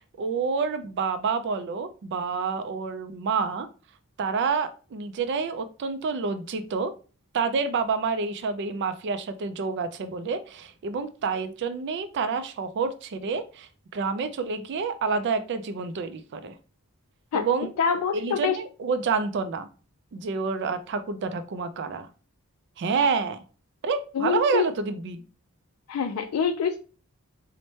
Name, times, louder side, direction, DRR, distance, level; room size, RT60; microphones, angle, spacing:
voice 1, 0.0-3.7 4.2-6.9 7.3-16.6 17.3-17.7 18.1-19.7 20.1-22.1 22.8-23.4 23.8-25.2, right 5 dB, 55° right, 9 dB, 0.3 m, -28 dB
voice 2, 17.8-18.6 24.2-24.7 25.9-26.8, left 6 dB, 80° left, 6 dB, 0.3 m, -25 dB
4.1 x 2.1 x 3.1 m, 0.36 s
head